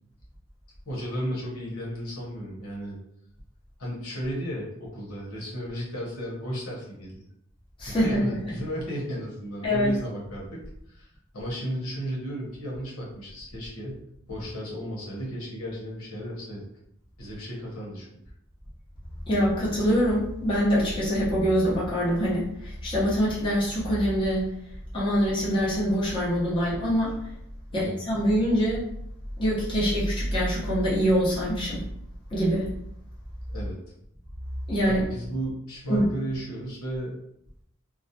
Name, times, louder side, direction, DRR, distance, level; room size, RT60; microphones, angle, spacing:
voice 1, 0.8-3.0 3.8-7.2 7.9-10.6 10.9-16.7 17.2-18.1 27.7-28.0 33.5-33.8 34.9-37.2, equal, 85° left, -4 dB, 0.9 m, -34 dB
voice 2, 7.8-8.4 9.6-9.9 19.3-24.5 24.9-27.1 27.7-28.8 29.4-31.8 32.3-32.7 34.7-35.0 35.9-36.1, equal, 25° left, -8 dB, 0.8 m, -24 dB
2.4 x 2.1 x 2.7 m, 0.76 s
head